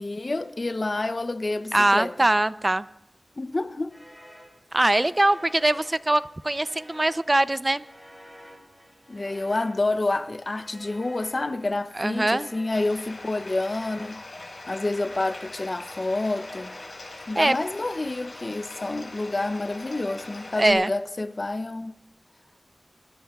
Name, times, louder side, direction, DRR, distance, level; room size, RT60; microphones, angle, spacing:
voice 1, 0.0-2.1 3.4-4.0 9.1-14.2 14.7-16.7 17.3-21.9, left 2 dB, 50° left, 0.6 m, -28 dB
voice 2, 1.7-2.9 4.7-7.8 12.0-12.5 17.4-17.6 20.6-20.9, right 1 dB, 30° right, 0.5 m, -22 dB
sound 1, 3.9-17.5, equal, ahead, 5.8 m, -50 dB
Bathtub (filling or washing), 12.7-20.7, left 2 dB, 85° left, 4.8 m, -42 dB
25.5 x 21.0 x 2.4 m
wide cardioid pair, 60°, 0 cm